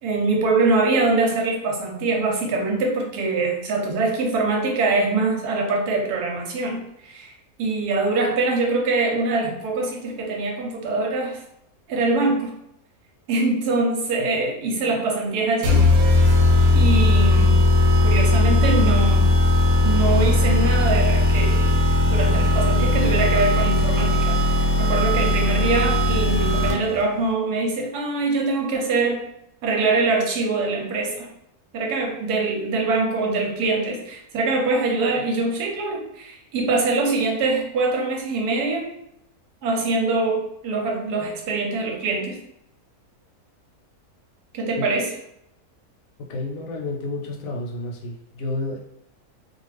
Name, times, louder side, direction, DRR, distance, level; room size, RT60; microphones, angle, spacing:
voice 1, 0.0-7.3 7.6-11.4 11.9-12.5 13.3-15.8 16.7-17.6 18.0-19.3 19.8-21.8 22.1-29.2 29.6-31.3 31.7-38.9 39.6-42.4 44.5-45.1, right 3 dB, 90° right, 1 dB, 1.2 m, -23 dB
sound 1, 15.6-27.0, left 1 dB, 70° right, 1.0 m, -18 dB
voice 2, 46.3-48.8, left 2 dB, 70° left, 0 dB, 0.9 m, -30 dB
2.4 x 2.3 x 3.2 m, 0.78 s
omnidirectional pair, 1.6 m